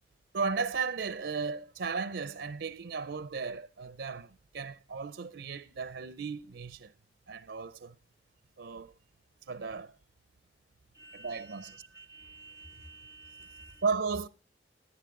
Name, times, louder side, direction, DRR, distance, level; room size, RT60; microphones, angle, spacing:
voice 1, 0.3-6.9 7.3-7.9 8.6-8.9 9.5-9.9 11.1-11.8 13.8-14.3, right 5 dB, 75° right, 0.6 m, -35 dB
voice 2, 11.0-13.8, right 3 dB, 20° left, 0.6 m, -51 dB
16.0 x 10.5 x 3.7 m
head